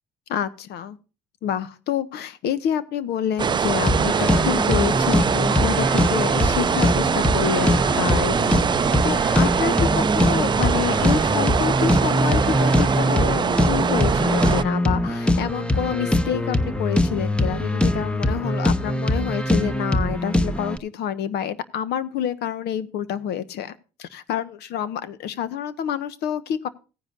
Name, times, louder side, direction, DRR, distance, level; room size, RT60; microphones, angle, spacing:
voice 1, 0.3-1.0 1.4-26.7, left 9 dB, 75° left, 15 dB, 1.1 m, -28 dB
sound 1, 3.4-14.6, right 6 dB, 25° right, 0.5 m, -22 dB
sound 2, 3.8-20.8, left 1 dB, 5° left, 0.9 m, -22 dB
17.0 x 10.0 x 2.4 m, 0.33 s
cardioid pair, 110°, 17 cm